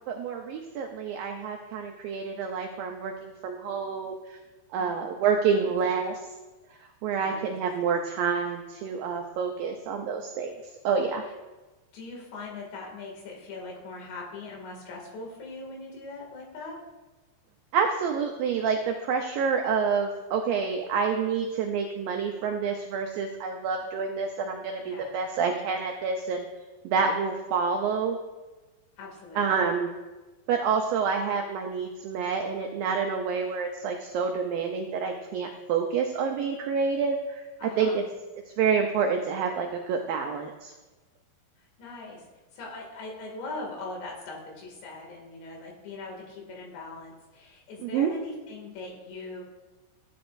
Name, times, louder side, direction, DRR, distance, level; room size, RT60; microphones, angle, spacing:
voice 1, 0.1-4.4 4.7-6.2 7.0-10.5 10.8-11.2 17.7-26.5 26.8-28.2 29.4-29.9 30.5-38.0 38.6-40.7 47.8-48.1, right 6 dB, 85° right, 3 dB, 2.0 m, -28 dB
voice 2, 4.7-5.1 7.2-7.6 11.9-16.8 24.8-25.1 29.0-29.7 37.6-38.0 41.6-42.2 42.5-49.4, left 3 dB, 75° left, -1 dB, 4.6 m, -41 dB
15.5 x 10.0 x 2.6 m, 1.2 s
omnidirectional pair, 5.1 m